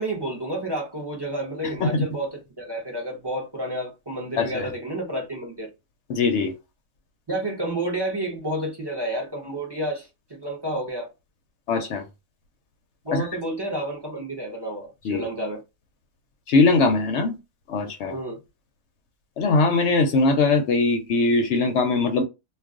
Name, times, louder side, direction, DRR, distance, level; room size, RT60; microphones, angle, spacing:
voice 1, 0.0-5.7 7.3-11.1 13.0-15.6 18.1-18.4, right 1 dB, 25° right, 0.6 m, -30 dB
voice 2, 4.4-4.7 6.1-6.5 11.7-12.0 13.1-13.3 15.0-15.2 16.5-17.4 17.7-18.2 19.4-22.2, left 3 dB, 65° left, 0.8 m, -21 dB
2.3 x 2.3 x 3.6 m
omnidirectional pair, 1.4 m